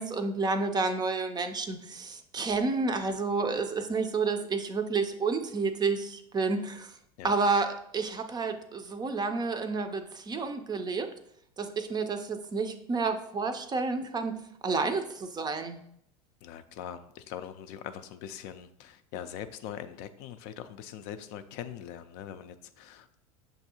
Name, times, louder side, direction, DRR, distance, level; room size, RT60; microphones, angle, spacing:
voice 1, 0.0-6.9 7.2-11.1 11.6-15.8, right 4 dB, 20° right, 7 dB, 0.4 m, -30 dB
voice 2, 16.4-23.2, left 10 dB, 60° left, 10 dB, 0.4 m, -42 dB
6.4 x 2.6 x 2.7 m, 0.72 s
hypercardioid pair, 100°, 19 cm